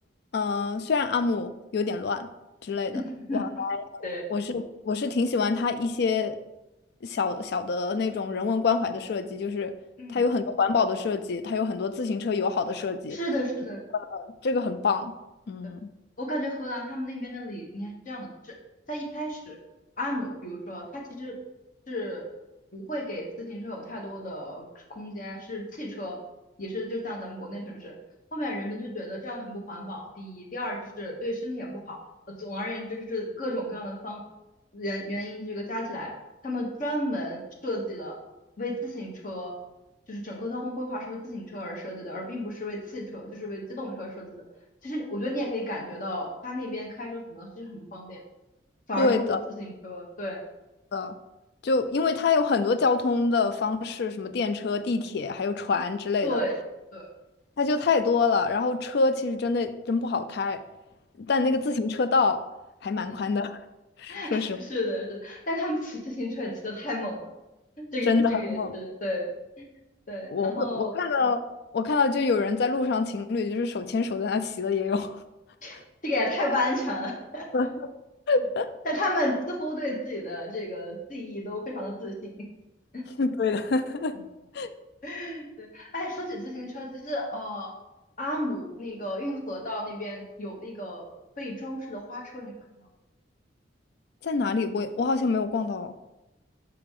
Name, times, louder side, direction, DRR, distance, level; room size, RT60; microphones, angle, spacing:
voice 1, 0.3-2.3 2.6-3.0 3.3-4.0 4.3-6.4 7.0-9.7 10.1-13.2 13.9-15.1 15.5-15.8 49.0-49.4 50.9-51.1 51.6-56.4 57.6-60.6 61.3-62.4 62.8-63.6 64.0-64.6 68.1-68.7 70.3-71.4 71.7-75.2 77.5-77.7 78.3-78.7 83.2-84.1 84.5-84.7 94.2-95.9, left 4 dB, 65° left, 12 dB, 0.4 m, -26 dB
voice 2, 13.1-13.8 16.2-18.5 18.9-19.6 20.0-21.3 21.9-22.3 22.7-26.2 26.6-27.9 28.3-32.0 32.3-34.2 34.7-36.1 36.4-38.1 38.6-39.6 40.1-44.4 44.8-48.2 48.9-50.4 56.2-56.5 56.9-57.1 63.0-63.2 64.1-67.3 67.9-69.3 69.6-69.7 70.1-70.9 75.6-75.8 76.0-77.4 78.8-82.3 82.9-83.0 84.1-84.2 85.0-87.7 88.2-91.1 91.4-92.9, left 1 dB, 45° left, 0 dB, 1.2 m, -33 dB
5.9 x 4.9 x 3.6 m, 0.99 s
head